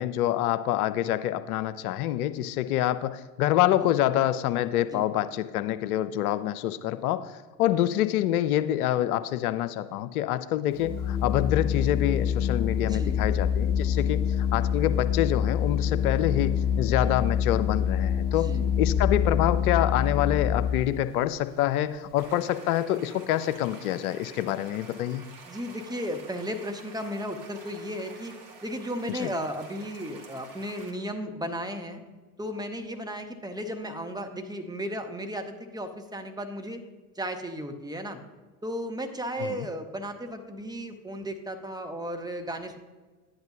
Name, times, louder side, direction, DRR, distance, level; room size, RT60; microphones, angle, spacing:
voice 1, 0.0-18.5 18.8-25.2 29.2-29.3 39.4-39.7, left 12 dB, 70° left, 13 dB, 0.6 m, -26 dB
Organ, 10.7-21.0, left 8 dB, 25° left, 0.3 m, -26 dB
voice 2, 12.8-13.3 13.9-14.2 18.4-18.7 25.4-28.3 28.6-32.0 32.4-36.8 37.1-38.2 38.6-42.8, equal, 10° right, 4 dB, 1.1 m, -35 dB
sound 1, 22.2-30.9, right 4 dB, 45° right, 2.2 m, -49 dB
11.0 x 10.5 x 2.8 m, 1.3 s
figure-of-eight pair, 70°, 47 cm